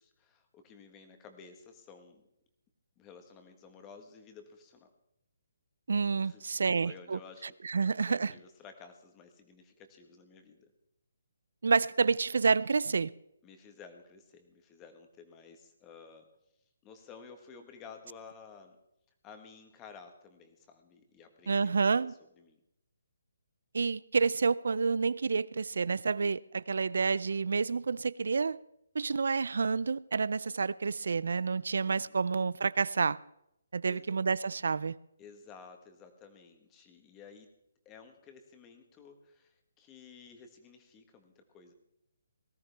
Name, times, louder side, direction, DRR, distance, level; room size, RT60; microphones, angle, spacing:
voice 1, 0.0-2.2 3.0-4.9 6.2-7.5 7.8-10.7 13.4-16.3 16.8-18.8 19.2-22.6 33.8-34.1 35.2-37.5 37.8-41.7, left 5 dB, 15° left, 1.4 m, -53 dB
voice 2, 5.9-7.2 7.6-8.3 11.6-13.1 21.5-22.1 23.7-28.6 28.9-33.2 33.7-35.0, right 5 dB, 75° right, 0.4 m, -29 dB
18.5 x 13.5 x 3.4 m
hypercardioid pair, 165°, 0 cm